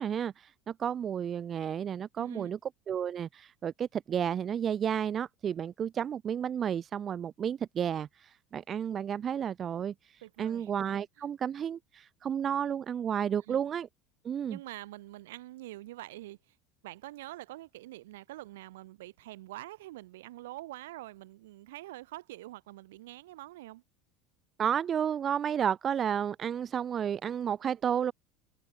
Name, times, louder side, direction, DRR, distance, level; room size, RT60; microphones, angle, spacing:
voice 1, 0.0-2.6 2.9-13.9 14.2-14.6 24.6-28.1, right 8 dB, 35° right, 0.6 m, -32 dB
voice 2, 2.2-2.5 10.2-10.7 13.5-13.6 14.4-16.5 16.8-23.8, right 17 dB, 90° right, 4.8 m, -45 dB
supercardioid pair, 110°, 0 cm